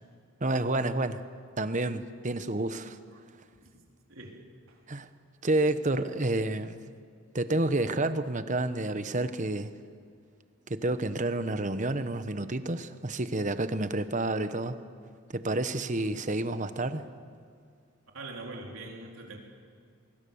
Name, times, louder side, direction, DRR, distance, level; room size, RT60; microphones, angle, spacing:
voice 1, 0.4-1.2 1.6-3.0 4.9-5.1 5.4-6.9 7.3-9.7 10.7-14.8 15.3-17.1, right 2 dB, 35° right, 11 dB, 1.0 m, -29 dB
voice 2, 3.5-3.8 4.1-4.8 18.1-19.4, right 2 dB, 75° right, 1 dB, 3.8 m, -43 dB
23.5 x 23.0 x 7.1 m, 2.2 s
head